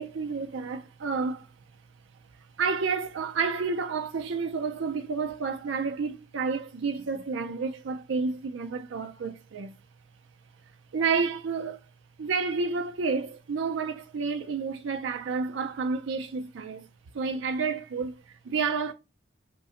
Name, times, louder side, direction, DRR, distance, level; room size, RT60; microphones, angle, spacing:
voice 1, 0.0-1.5 2.3-9.8 10.9-11.8 12.2-16.9 17.1-18.9, right 5 dB, 85° right, 0.4 m, -30 dB
5.4 x 2.1 x 3.7 m
head